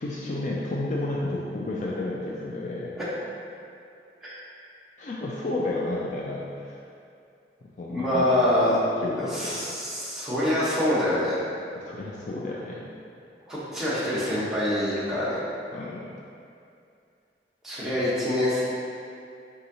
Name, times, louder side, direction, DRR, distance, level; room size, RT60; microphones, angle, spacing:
voice 1, 0.0-2.9 5.0-6.8 7.8-8.4 9.0-9.6 11.7-12.9 15.7-16.0, left 2 dB, 40° left, -4 dB, 0.3 m, -31 dB
voice 2, 7.9-8.8 9.3-11.4 13.5-15.4 17.6-18.6, left 1 dB, ahead, -11 dB, 0.9 m, -25 dB
4.2 x 3.6 x 2.7 m, 2.5 s
head